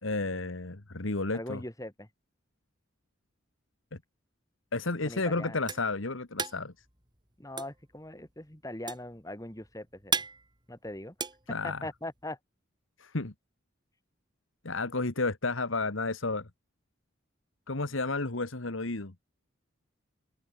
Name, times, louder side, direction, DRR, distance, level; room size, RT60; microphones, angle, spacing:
voice 1, 0.0-1.6 4.7-6.7 11.5-11.9 13.0-13.3 14.6-16.5 17.7-19.1, left 3 dB, 80° left, 1.8 m, -32 dB
voice 2, 1.3-2.1 5.0-5.7 7.4-10.2 10.7-11.1 11.6-12.4, left 1 dB, 15° left, 2.4 m, -41 dB
sound 1, 5.0-12.2, right 5 dB, 20° right, 6.0 m, -37 dB
open air
head